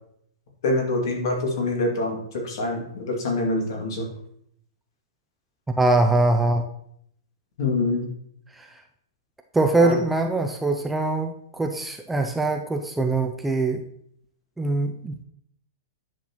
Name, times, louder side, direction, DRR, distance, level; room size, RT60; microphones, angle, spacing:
voice 1, 0.6-4.1 7.6-8.1 9.8-10.0, left 2 dB, 65° left, 1 dB, 2.2 m, -25 dB
voice 2, 5.8-6.7 8.6-8.7 9.5-13.8 14.6-15.2, right 2 dB, 5° right, 4 dB, 0.4 m, -22 dB
9.7 x 5.7 x 3.0 m, 0.69 s
supercardioid pair, 165°, 2 cm